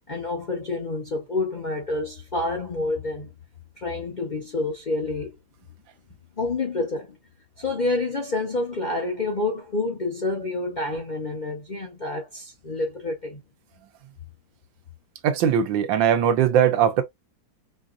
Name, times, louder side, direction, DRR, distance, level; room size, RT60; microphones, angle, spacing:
voice 1, 0.1-3.3 3.8-5.3 6.4-7.2 7.6-13.4, left 2 dB, 60° left, 0.4 m, -28 dB
voice 2, 15.2-17.0, right 9 dB, 80° right, 1.4 m, -20 dB
4.5 x 2.5 x 2.4 m
omnidirectional pair, 2.1 m